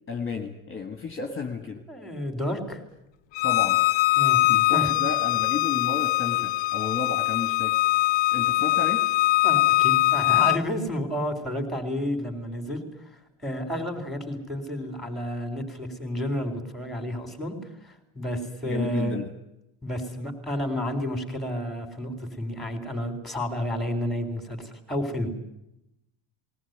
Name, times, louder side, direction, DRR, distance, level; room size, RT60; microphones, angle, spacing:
voice 1, 0.1-1.8 3.4-3.8 4.2-7.8 8.3-9.1 18.6-19.3, left 5 dB, 25° left, 6 dB, 1.7 m, -33 dB
voice 2, 1.9-2.8 4.2-4.4 4.7-4.9 9.4-12.8 13.4-17.6 17.8-19.2 19.8-25.3, equal, ahead, 4 dB, 3.8 m, -31 dB
Bowed string instrument, 3.4-10.6, left 17 dB, 60° left, 0.8 m, -22 dB
20.5 x 18.5 x 9.4 m, 0.86 s
cardioid pair, 175°, 49 cm